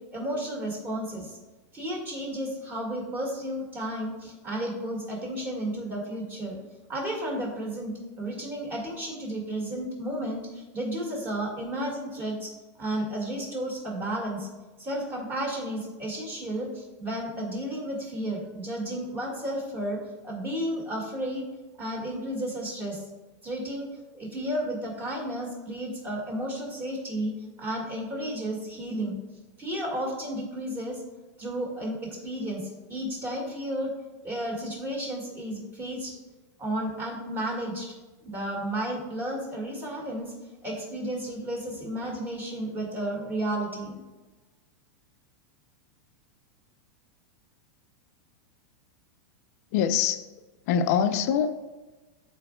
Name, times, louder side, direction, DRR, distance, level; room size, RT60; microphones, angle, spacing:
voice 1, 0.1-1.4 1.7-6.6 6.9-12.5 12.8-14.5 14.8-21.5 21.8-23.0 23.4-23.9 24.1-29.2 29.6-31.0 31.4-33.9 34.2-36.2 36.6-37.9 38.2-40.3 40.6-44.0, right 1 dB, 20° right, -1 dB, 2.0 m, -32 dB
voice 2, 49.7-50.3 50.7-51.6, left 8 dB, 55° left, 9 dB, 0.5 m, -24 dB
11.0 x 4.6 x 2.3 m, 1.2 s
supercardioid pair, 150°, 10 cm